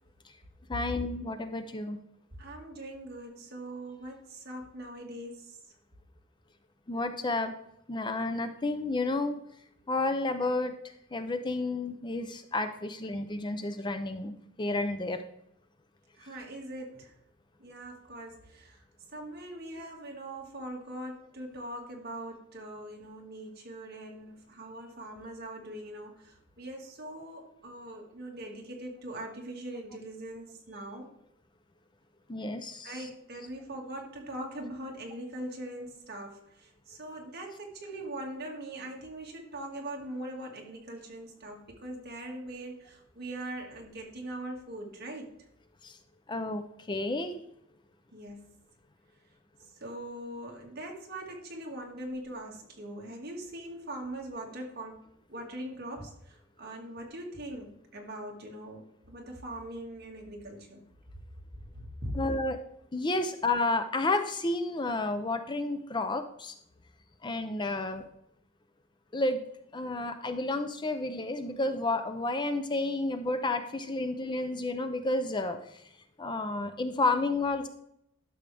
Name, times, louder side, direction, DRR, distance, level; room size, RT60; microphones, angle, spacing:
voice 1, 0.7-2.0 6.9-7.5 7.9-9.4 9.9-10.7 11.1-15.2 32.3-33.1 45.8-45.9 46.3-47.4 62.1-62.6 62.9-66.5 67.2-68.1 69.1-69.4 69.7-75.6 76.2-77.7, left 2 dB, 20° left, 8 dB, 0.5 m, -31 dB
voice 2, 2.4-5.6 16.2-17.1 17.6-18.8 19.1-31.1 32.8-45.3 48.1-48.4 49.8-55.0 55.3-60.8 62.0-62.2, right 1 dB, 50° right, 0 dB, 2.0 m, -41 dB
12.0 x 6.4 x 3.4 m, 0.77 s
head